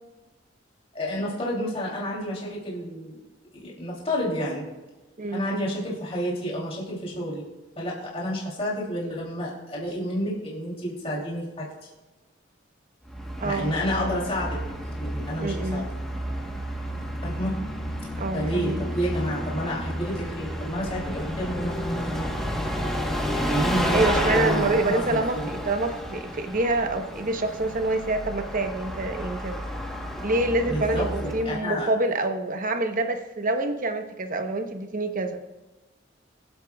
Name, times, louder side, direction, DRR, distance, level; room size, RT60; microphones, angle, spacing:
voice 1, 0.9-3.2 3.5-4.7 5.3-7.4 7.8-11.7 13.4-14.6 15.0-15.8 17.2-17.6 18.3-22.3 23.3-25.2 30.7-31.1 31.4-31.9, equal, 30° left, -5 dB, 3.0 m, -30 dB
Bus, 13.0-31.6, equal, ahead, 1.2 m, -31 dB
voice 2, 13.4-13.7 15.4-15.9 18.2-18.9 23.9-29.6 30.2-35.4, right 2 dB, 45° right, 6 dB, 1.0 m, -26 dB
24.5 x 8.2 x 2.4 m, 1.1 s
head